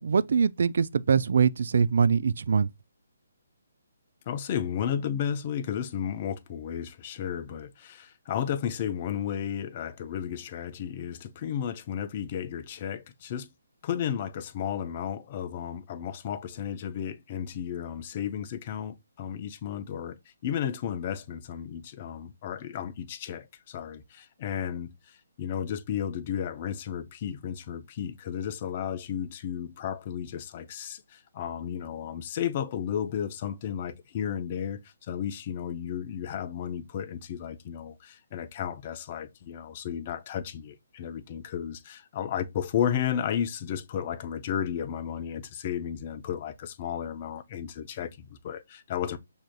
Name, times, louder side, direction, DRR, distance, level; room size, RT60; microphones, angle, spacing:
voice 1, 0.0-2.7, right 6 dB, 65° right, 0.3 m, -23 dB
voice 2, 4.3-13.5 13.8-20.2 20.4-49.2, left 9 dB, 35° left, 0.5 m, -33 dB
6.1 x 2.7 x 2.2 m
hypercardioid pair, 150°, 0 cm